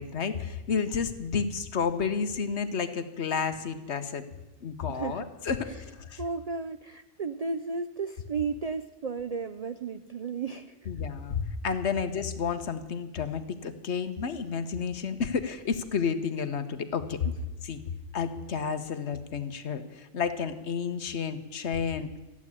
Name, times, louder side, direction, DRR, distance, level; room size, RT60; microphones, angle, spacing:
voice 1, 0.0-4.2 4.6-6.2 10.9-17.2 17.6-17.8 18.1-22.2, left 6 dB, 60° left, 9 dB, 1.2 m, -31 dB
voice 2, 4.9-5.3 5.7-5.8 6.2-10.9 17.2-17.3, right 4 dB, 85° right, 10 dB, 0.3 m, -34 dB
14.0 x 8.4 x 9.8 m, 1.1 s
omnidirectional pair, 1.4 m